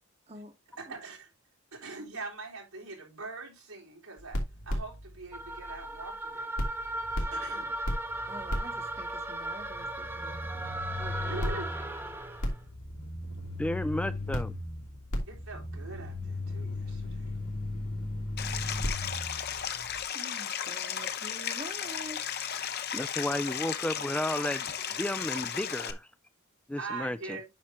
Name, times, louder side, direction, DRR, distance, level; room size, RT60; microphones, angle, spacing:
voice 1, 0.8-1.3 1.7-4.4 4.7-6.5 7.2-7.8 11.3-11.7 15.2-17.3 26.8-27.5, right 3 dB, 90° right, 3.8 m, -42 dB
sound 1, 4.2-6.2 6.6-20.0, left 1 dB, 85° left, 2.9 m, -36 dB
sound 2, 5.3-12.6, right 1 dB, 10° right, 1.2 m, -37 dB
voice 2, 8.3-10.4 11.0-11.6 20.1-22.5, right 1 dB, 30° right, 1.1 m, -47 dB
voice 3, 13.6-14.5 22.9-26.1 26.7-27.4, left 1 dB, 5° left, 0.4 m, -33 dB
Stream, 18.4-25.9, left 8 dB, 50° left, 0.8 m, -35 dB
9.2 x 5.8 x 2.9 m
head